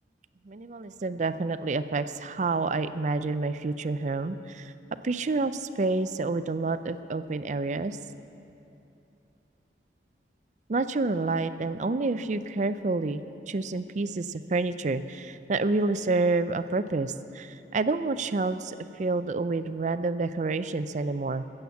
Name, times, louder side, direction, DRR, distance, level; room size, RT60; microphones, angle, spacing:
voice 1, 0.4-4.7 5.0-8.0 10.7-21.4, right 3 dB, 45° right, 12 dB, 0.4 m, -28 dB
16.5 x 7.9 x 7.1 m, 2.7 s
head